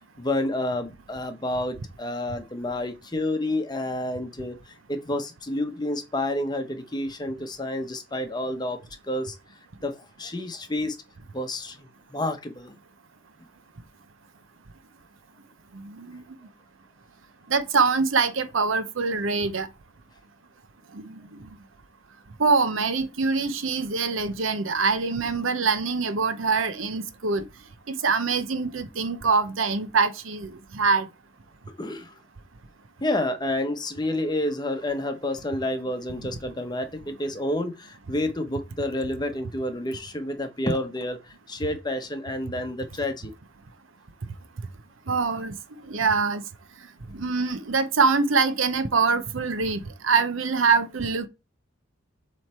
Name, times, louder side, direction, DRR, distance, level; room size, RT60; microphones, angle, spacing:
voice 1, 0.2-9.4 9.8-11.0 11.3-12.8 31.8-32.1 33.0-43.3, left 1 dB, 20° left, 0.9 m, -29 dB
voice 2, 15.7-16.2 17.5-19.7 20.9-21.2 22.4-27.4 27.9-31.1 45.1-45.5 45.9-46.4 47.1-51.3, right 4 dB, 70° right, 0.8 m, -24 dB
7.7 x 3.2 x 4.3 m
head